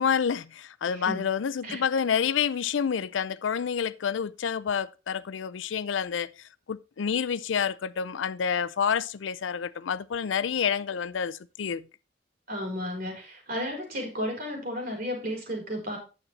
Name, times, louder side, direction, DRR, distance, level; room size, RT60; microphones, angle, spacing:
voice 1, 0.0-6.3 6.7-11.8, left 7 dB, 80° left, 0.5 m, -28 dB
voice 2, 0.9-1.2 1.6-1.8 12.5-16.0, equal, 50° right, 4.6 m, -33 dB
9.3 x 7.2 x 4.0 m
head